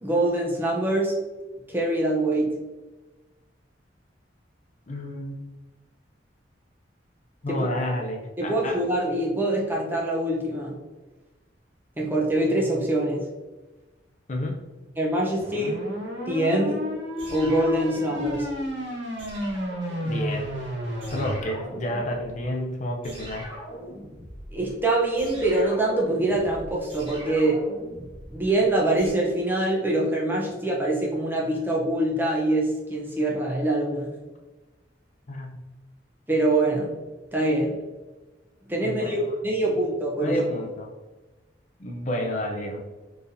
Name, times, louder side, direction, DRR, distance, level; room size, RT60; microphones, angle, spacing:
voice 1, 0.0-1.2 1.7-2.5 7.5-7.7 8.4-10.8 12.0-13.3 15.0-15.8 16.3-16.8 17.3-18.5 24.5-27.6 28.3-34.1 36.3-37.0 37.3-37.8 38.7-40.4, right 1 dB, 10° right, -3 dB, 0.7 m, -24 dB
voice 2, 4.9-5.4 7.4-8.8 14.3-14.6 20.0-20.5 21.1-23.5 35.3-35.6 38.8-39.2 40.2-40.9 41.8-42.8, left 1 dB, 40° left, 1 dB, 0.5 m, -30 dB
sound 1, 15.4-21.4, left 1 dB, 75° right, 1.3 m, -31 dB
sound 2, 17.2-18.7 19.2-20.7 21.0-22.6 23.0-29.1, equal, 30° right, 1.3 m, -42 dB
4.4 x 3.3 x 2.6 m, 1.2 s
head